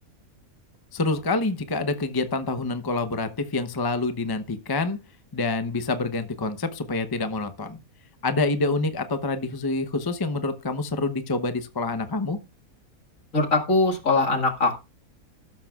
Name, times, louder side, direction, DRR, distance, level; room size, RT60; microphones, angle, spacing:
voice 1, 0.9-5.0 5.3-7.8 8.2-12.4, left 3 dB, 20° left, 0.7 m, -27 dB
voice 2, 13.3-14.8, left 3 dB, 60° left, 2.4 m, -22 dB
13.5 x 12.0 x 2.4 m
omnidirectional pair, 1.5 m